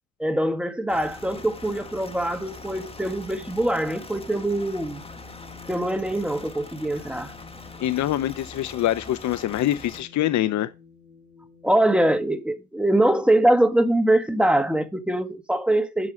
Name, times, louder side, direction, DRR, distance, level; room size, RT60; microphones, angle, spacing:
voice 1, 0.2-5.0 5.7-7.3 11.6-16.1, right 1 dB, 5° right, 1.5 m, -23 dB
sound 1, 0.9-10.0, left 2 dB, 20° left, 1.7 m, -42 dB
sound 2, 1.0-12.2, left 6 dB, 45° right, 4.1 m, -51 dB
voice 2, 7.8-10.7, left 13 dB, 70° left, 0.7 m, -24 dB
11.5 x 5.5 x 5.1 m
cardioid pair, 90°, 30 cm